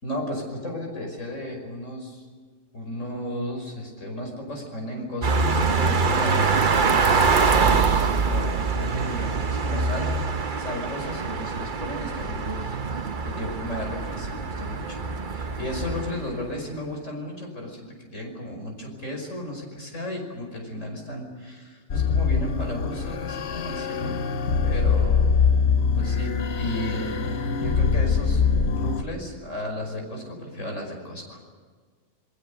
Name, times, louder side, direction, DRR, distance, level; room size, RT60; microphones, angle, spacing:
voice 1, 0.0-2.3 2.7-8.5 8.8-12.8 13.2-15.0 15.3-24.2 24.6-25.3 25.9-28.4 28.8-31.4, left 1 dB, 90° left, 2 dB, 6.0 m, -34 dB
sound 1, 5.2-16.6, right 4 dB, 45° right, 1.1 m, -24 dB
sound 2, 21.9-29.0, left 5 dB, 65° left, 1.2 m, -23 dB
29.0 x 20.0 x 6.9 m, 1.5 s
omnidirectional pair, 1.3 m